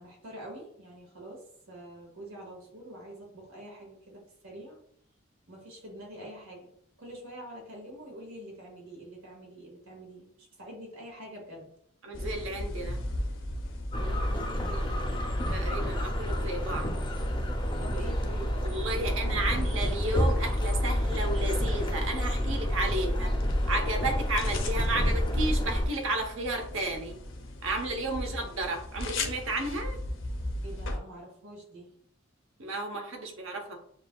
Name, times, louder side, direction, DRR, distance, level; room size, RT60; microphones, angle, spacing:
voice 1, 0.0-4.8 5.5-6.7 7.0-11.7 14.0-15.4 17.8-19.8 30.6-31.9, right 1 dB, 90° right, -2 dB, 1.8 m, -45 dB
voice 2, 12.0-13.0 15.5-17.0 18.6-23.3 23.7-27.2 27.6-30.0 32.6-33.8, right 2 dB, 65° right, 3 dB, 0.9 m, -33 dB
sound 1, 12.1-31.0, left 1 dB, 60° left, 0.7 m, -38 dB
sound 2, 13.9-25.9, equal, 20° left, 0.6 m, -29 dB
7.3 x 2.7 x 2.3 m, 0.66 s
head